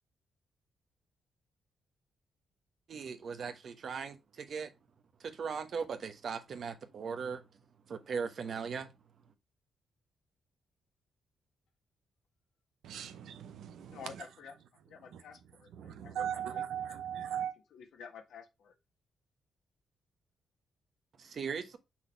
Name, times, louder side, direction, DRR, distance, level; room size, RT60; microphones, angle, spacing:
voice 1, 2.9-4.7 5.2-7.5 7.9-8.9 21.2-21.8, right 6 dB, 60° right, 1.1 m, -38 dB
voice 2, 12.8-14.0 15.1-15.2 15.8-17.5, right 9 dB, 85° right, 0.8 m, -38 dB
voice 3, 13.9-14.5 14.9-17.5 17.7-18.8, left 6 dB, 80° left, 1.6 m, -51 dB
6.0 x 4.1 x 4.5 m
cardioid pair, 95°, 0 cm